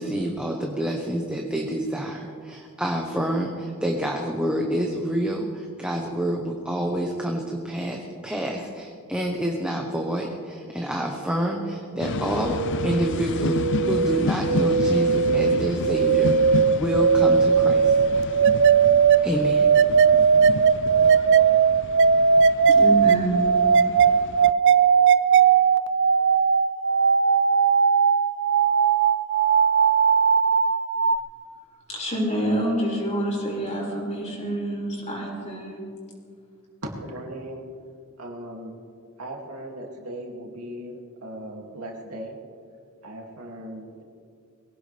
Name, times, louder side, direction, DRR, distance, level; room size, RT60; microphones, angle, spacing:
voice 1, 0.0-18.3 19.2-19.7, right 1 dB, 5° right, 0 dB, 1.1 m, -28 dB
sound 1, 12.0-24.5, left 4 dB, 55° left, 0.4 m, -32 dB
sound 2, 12.0-31.2, right 6 dB, 55° right, 0.5 m, -19 dB
voice 2, 22.8-23.4 31.9-35.8, right 1 dB, 30° left, -4 dB, 5.5 m, -27 dB
voice 3, 36.8-37.6 38.2-38.8 39.2-42.4 43.0-44.0, right 1 dB, 90° right, 0 dB, 2.6 m, -37 dB
22.5 x 17.0 x 3.4 m, 2.2 s
head